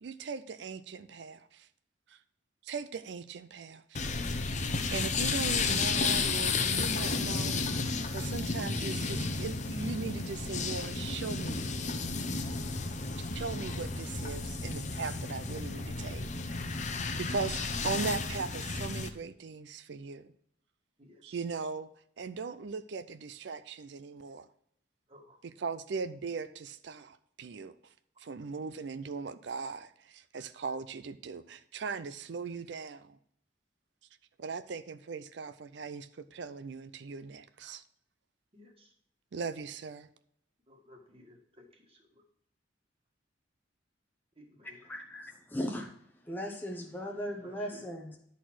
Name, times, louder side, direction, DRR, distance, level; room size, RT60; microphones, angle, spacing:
voice 1, 0.0-1.7 2.1-2.2 2.6-4.0 4.5-11.7 13.2-16.7 17.1-20.3 21.2-21.9 22.2-24.5 25.4-27.9 28.2-33.2 34.4-37.8 39.3-40.1, right 5 dB, 65° right, 11 dB, 0.4 m, -39 dB
sound 1, 3.9-19.1, left 4 dB, 40° left, 0.7 m, -32 dB
voice 2, 21.0-21.4 25.1-25.4 38.5-38.9 40.7-42.2 44.3-44.9 47.4-47.9, left 1 dB, 30° right, 1 dB, 1.7 m, -57 dB
voice 3, 44.9-45.9 46.3-48.2, equal, 10° left, 0 dB, 0.9 m, -37 dB
11.0 x 4.2 x 6.1 m, 0.69 s
head